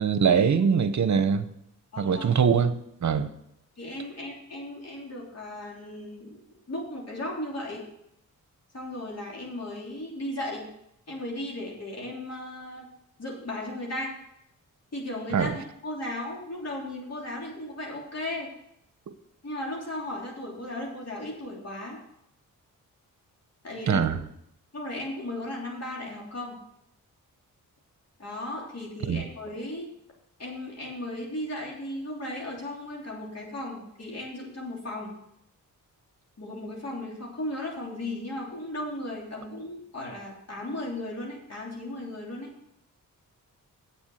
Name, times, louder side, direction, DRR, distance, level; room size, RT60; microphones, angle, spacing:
voice 1, 0.0-1.5 2.0-2.8 3.0-3.3 15.3-15.5 23.9-24.2 29.1-29.2, right 6 dB, 55° right, 11 dB, 1.0 m, -22 dB
voice 2, 1.9-2.3 3.8-6.4 6.7-7.8 8.7-10.7 11.1-12.9 13.2-14.1 14.9-18.5 19.4-22.0 23.6-24.2 24.7-26.6 28.2-29.9 30.4-35.1 36.4-42.5, left 1 dB, 50° left, -2 dB, 3.3 m, -36 dB
8.3 x 7.1 x 7.8 m, 0.77 s
cardioid pair, 70°, 34 cm